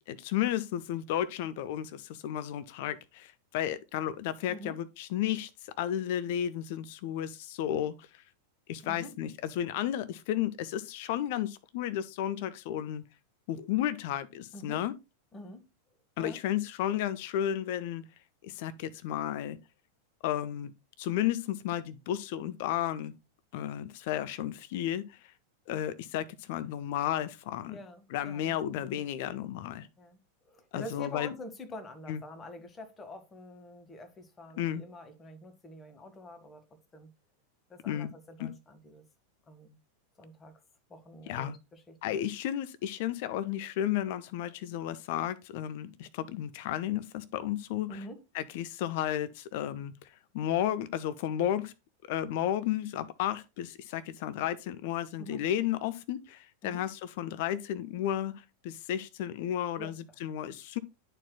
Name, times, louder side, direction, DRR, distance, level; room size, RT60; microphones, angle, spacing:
voice 1, 0.1-8.2 8.7-9.3 9.6-13.0 13.5-14.9 16.2-18.0 18.4-19.6 20.2-20.7 21.0-23.1 23.5-25.2 25.7-27.8 28.1-29.9 30.7-31.3 32.1-32.2 34.6-34.9 37.9-38.1 38.4-38.5 41.3-41.5 42.0-48.0 48.3-51.7 52.1-60.8, left 11 dB, 50° left, 0.4 m, -33 dB
voice 2, 8.8-9.1 14.5-14.8 15.3-15.7 16.2-16.4 27.7-29.0 30.0-30.2 30.4-37.1 37.7-39.0 39.5-39.8 40.2-40.5 40.9-42.1 47.9-48.2 55.2-55.4 56.6-56.9 59.8-60.0, left 1 dB, 20° left, 1.1 m, -46 dB
10.5 x 4.4 x 2.3 m
figure-of-eight pair, 90°, 0 cm